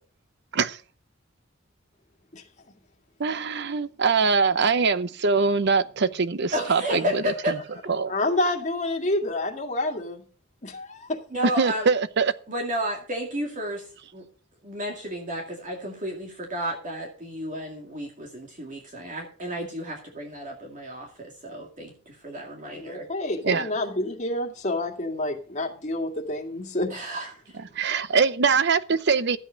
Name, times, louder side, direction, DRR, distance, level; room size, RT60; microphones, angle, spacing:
voice 1, 3.2-7.6 7.9-8.1 11.6-12.3 23.4-23.7 27.7-29.4, right 5 dB, 60° right, 0.7 m, -23 dB
voice 2, 6.5-7.6 11.3-11.9 12.5-13.9 14.1-14.2 14.6-23.1 26.9-27.3 27.7-27.9, equal, 40° right, 2.3 m, -32 dB
voice 3, 8.1-10.2 10.6-11.2 22.8-26.9, left 1 dB, 40° left, 2.1 m, -28 dB
13.0 x 8.3 x 5.2 m
head